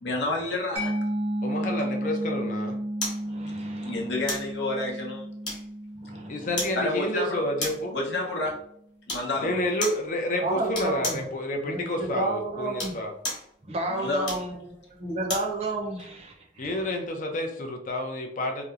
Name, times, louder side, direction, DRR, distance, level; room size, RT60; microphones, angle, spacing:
voice 1, 0.0-0.9 3.8-5.2 6.8-7.4 7.9-8.6 9.1-9.5 13.9-14.4, left 2 dB, 75° left, -1 dB, 0.7 m, -29 dB
Mallet percussion, 0.8-8.1, right 1 dB, 80° right, 0.8 m, -33 dB
voice 2, 1.4-2.8 6.3-8.0 9.4-13.1 16.6-18.6, left 1 dB, 45° left, 3 dB, 0.4 m, -29 dB
sound 1, 3.0-3.3 4.3-4.5 5.4-5.9 6.6-6.8 7.6-7.9 9.1-9.3 9.8-10.1 10.7-11.3 12.6-13.5 14.2-15.5 16.0-16.1, left 1 dB, 25° left, 1.0 m, -33 dB
voice 3, 3.2-4.0 6.0-6.5 10.4-11.2 11.6-13.0 13.7-14.5 15.0-16.8, right 2 dB, 35° right, 1 dB, 0.5 m, -31 dB
2.8 x 2.0 x 2.4 m, 0.70 s
head